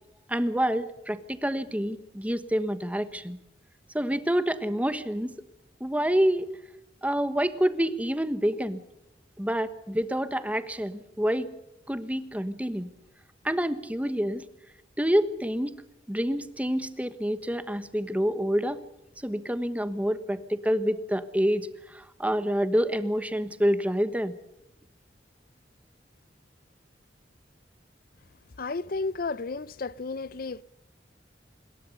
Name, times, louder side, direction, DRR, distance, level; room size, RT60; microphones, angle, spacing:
voice 1, 0.3-3.4 3.9-5.4 5.8-6.5 7.0-8.8 9.4-11.5 11.9-12.9 13.4-14.4 15.0-15.8 16.1-18.8 19.2-24.4, equal, 10° right, 1.3 m, -27 dB
voice 2, 28.6-30.6, left 3 dB, 55° left, 0.7 m, -32 dB
26.0 x 21.0 x 5.4 m
head